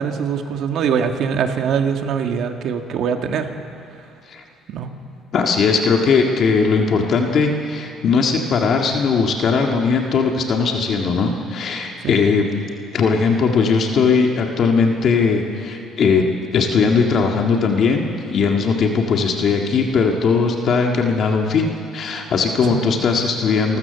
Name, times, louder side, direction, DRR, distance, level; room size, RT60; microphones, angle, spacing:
voice 1, 0.0-3.5 4.7-4.9 12.0-12.1 22.7-22.8, right 7 dB, 65° right, 5 dB, 1.7 m, -22 dB
voice 2, 5.3-12.5 12.9-16.2 16.5-23.8, left 5 dB, 50° left, 2 dB, 1.9 m, -18 dB
28.0 x 14.0 x 6.9 m, 2.5 s
cardioid pair, 115°, 0 cm